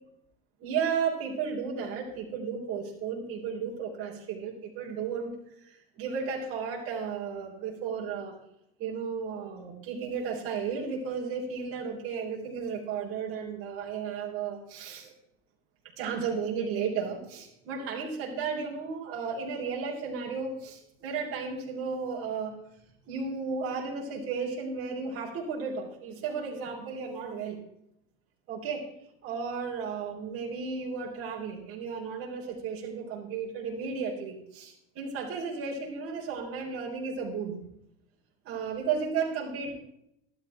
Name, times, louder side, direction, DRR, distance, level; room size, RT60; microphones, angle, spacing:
voice 1, 0.6-5.3 5.6-8.4 8.8-15.1 16.0-22.5 23.1-27.6 28.5-28.9 29.2-37.6 38.4-39.7, right 5 dB, 45° right, -3 dB, 3.9 m, -34 dB
13.0 x 12.0 x 4.6 m, 0.78 s
supercardioid pair, 120°, 31 cm